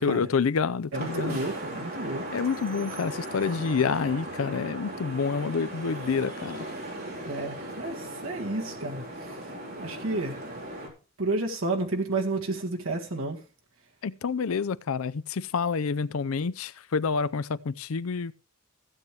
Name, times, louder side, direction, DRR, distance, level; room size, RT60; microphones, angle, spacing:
voice 1, 0.0-1.4 2.3-6.7 14.0-18.3, left 5 dB, 85° left, 0.5 m, -28 dB
Vehicle horn car horn honking / Traffic noise roadway noise, 0.9-10.9, right 1 dB, 50° right, 3.7 m, -38 dB
voice 2, 0.9-2.3 7.2-9.5 9.8-10.4 11.2-13.4, right 2 dB, 75° right, 1.8 m, -31 dB
15.5 x 8.4 x 3.2 m
head